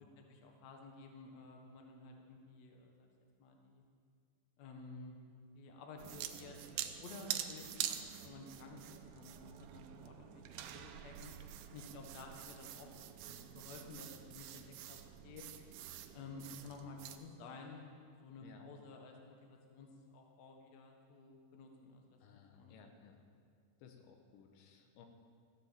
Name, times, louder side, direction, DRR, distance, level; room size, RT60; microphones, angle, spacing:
voice 1, 0.0-3.1 3.4-3.8 4.6-5.2 5.5-6.6 7.0-8.0 8.2-11.3 11.7-12.9 13.3-15.4 16.1-22.9, left 3 dB, 60° left, 2 dB, 1.8 m, -53 dB
sound 1, 6.0-17.2, right 11 dB, 85° right, 2.6 m, -46 dB
voice 2, 22.2-23.2 23.8-25.1, left 7 dB, 85° left, 4 dB, 3.4 m, -59 dB
15.5 x 7.7 x 7.3 m, 2.2 s
omnidirectional pair, 5.0 m